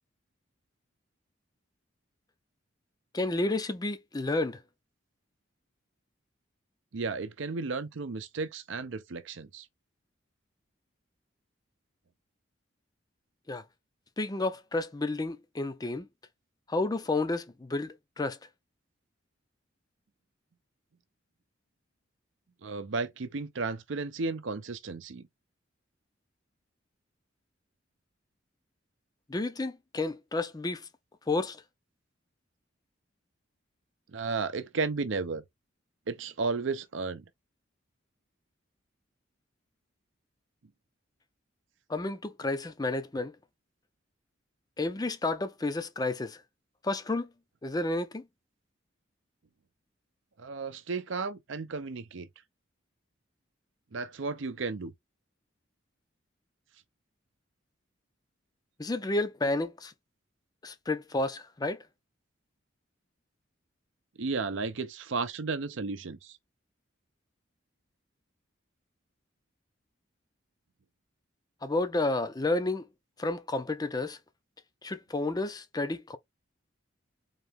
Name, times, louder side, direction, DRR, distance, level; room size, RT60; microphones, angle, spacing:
voice 1, 3.1-4.6 13.5-13.6 14.2-16.1 16.7-18.4 29.3-30.9 31.3-31.6 41.9-43.3 44.8-46.4 46.8-47.3 47.6-48.3 58.8-59.9 60.6-61.8 71.6-72.9 73.2-74.2 74.8-76.2, left 2 dB, 20° left, 0.5 m, -31 dB
voice 2, 6.9-9.7 22.6-25.3 34.1-35.4 36.1-37.2 50.4-52.3 53.9-54.9 64.2-66.4, right 4 dB, 70° right, 0.6 m, -33 dB
3.9 x 2.8 x 3.5 m
head